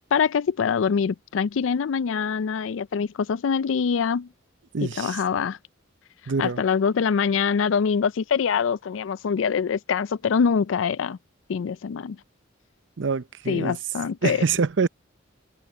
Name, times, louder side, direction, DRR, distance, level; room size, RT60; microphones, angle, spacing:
voice 1, 0.1-4.3 5.0-5.6 6.4-11.2 11.5-12.2 13.5-14.4, left 6 dB, 80° left, 0.4 m, -24 dB
voice 2, 4.7-5.2 6.3-6.6 13.0-13.8 14.2-14.9, right 5 dB, 70° right, 0.6 m, -25 dB
head